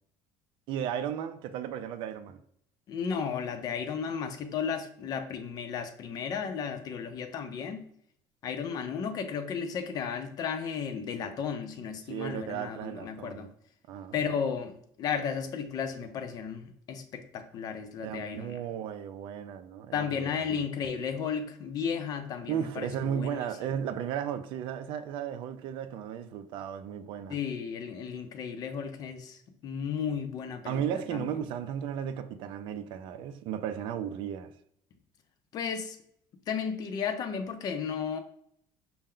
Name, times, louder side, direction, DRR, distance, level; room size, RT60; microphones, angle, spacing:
voice 1, 0.7-2.4 12.1-13.5 13.9-14.2 18.0-20.5 22.5-27.4 30.7-34.5, right 9 dB, 60° right, 0.4 m, -35 dB
voice 2, 2.9-7.8 8.4-13.5 14.1-14.7 15.0-18.6 19.9-23.5 27.3-31.3 35.5-36.0 36.5-38.2, left 6 dB, 40° left, 0.5 m, -34 dB
5.4 x 2.1 x 3.7 m
cardioid pair, 160°, 10 cm